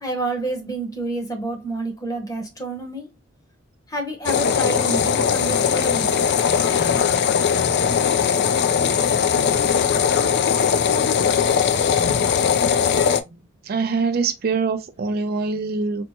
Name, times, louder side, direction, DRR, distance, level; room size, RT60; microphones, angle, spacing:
voice 1, 0.0-3.1 3.9-6.1, right 2 dB, 20° left, 0.9 m, -28 dB
sound 1, 4.2-13.2, left 7 dB, 55° left, 0.3 m, -19 dB
voice 2, 13.6-16.0, right 4 dB, 50° right, 0.4 m, -24 dB
4.3 x 2.1 x 2.8 m
head